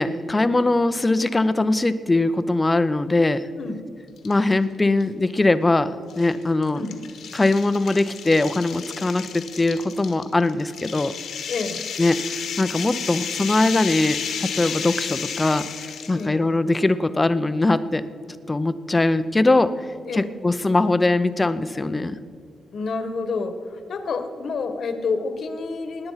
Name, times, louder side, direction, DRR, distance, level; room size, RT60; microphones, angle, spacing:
voice 1, 0.0-3.4 4.2-6.8 7.3-11.1 12.0-14.2 14.4-15.7 16.1-18.0 18.5-19.7 20.1-22.2, left 2 dB, 15° left, 13 dB, 0.5 m, -21 dB
sound 1, 4.2-4.6 5.0-5.1 6.1-16.2, left 7 dB, 75° left, 1.4 m, -32 dB
voice 2, 11.5-11.8 16.1-16.4 20.0-20.3 22.7-26.1, left 4 dB, 55° left, 8 dB, 1.3 m, -29 dB
18.5 x 9.2 x 5.7 m, 2.2 s
cardioid pair, 125°, 0 cm